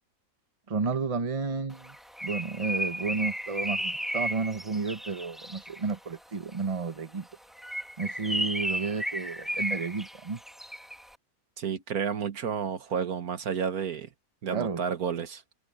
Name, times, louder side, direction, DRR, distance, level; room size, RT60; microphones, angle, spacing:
voice 1, 0.7-2.0 2.2-7.3 8.0-10.4 14.5-14.8, right 4 dB, 25° right, 1.0 m, -32 dB
Bird, 1.8-5.9 7.5-11.0, equal, ahead, 1.2 m, -34 dB
voice 2, 11.6-14.1 14.4-15.4, right 7 dB, 75° right, 1.9 m, -31 dB
omnidirectional pair, 1.6 m